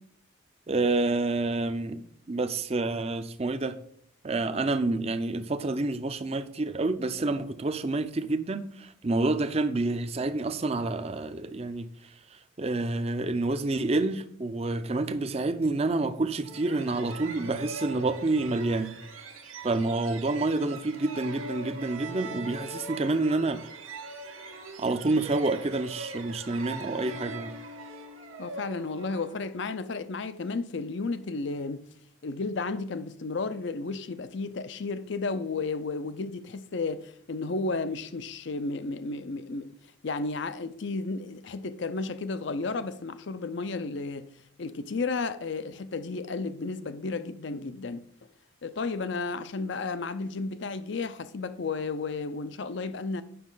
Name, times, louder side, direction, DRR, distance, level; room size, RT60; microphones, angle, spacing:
voice 1, 0.7-2.0 2.3-3.8 4.2-11.9 12.6-19.0 19.6-23.6 24.8-27.5, right 2 dB, 30° right, 0.5 m, -28 dB
sound 1, 16.4-29.9, right 3 dB, 90° right, 1.3 m, -41 dB
voice 2, 28.4-31.8 32.2-39.8 40.0-44.3 44.6-48.0 48.6-53.2, left 3 dB, 60° left, 0.5 m, -33 dB
9.3 x 6.2 x 3.9 m
head